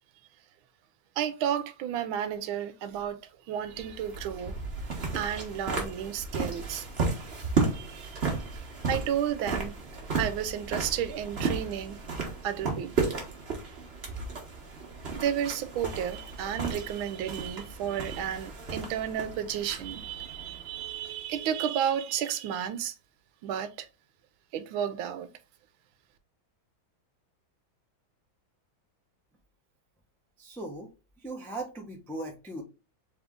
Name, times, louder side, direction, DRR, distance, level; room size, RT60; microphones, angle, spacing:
voice 1, 1.2-4.6 5.1-6.9 7.1-7.3 7.7-9.7 10.2-12.0 12.4-13.2 15.1-22.9 23.4-23.9 24.5-25.3, right 9 dB, 85° right, 1.4 m, -32 dB
sound 1, 3.7-21.3, right 4 dB, 40° right, 1.1 m, -34 dB
voice 2, 30.4-30.9 31.2-32.6, right 2 dB, 5° left, 0.4 m, -38 dB
3.6 x 3.5 x 3.6 m
omnidirectional pair, 2.2 m